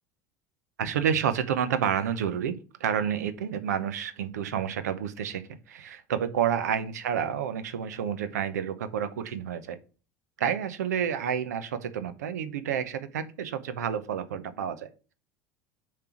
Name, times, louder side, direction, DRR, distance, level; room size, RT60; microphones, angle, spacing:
voice 1, 0.8-9.8 10.4-14.9, right 8 dB, 80° right, 12 dB, 0.7 m, -29 dB
6.8 x 3.3 x 5.6 m, 0.35 s
hypercardioid pair, 75°, 9 cm